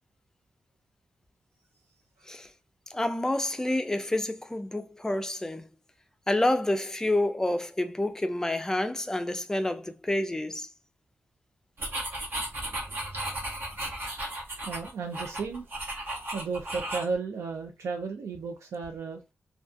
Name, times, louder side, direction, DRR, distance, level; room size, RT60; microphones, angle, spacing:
voice 1, 2.9-5.7 6.3-10.7, left 1 dB, 10° left, 0.3 m, -28 dB
sound 1, 11.8-17.1, right 1 dB, 50° right, 0.8 m, -35 dB
voice 2, 14.7-15.7 16.3-19.2, right 4 dB, 90° right, 0.4 m, -34 dB
2.3 x 2.2 x 2.5 m
wide cardioid pair, 110°, 5 cm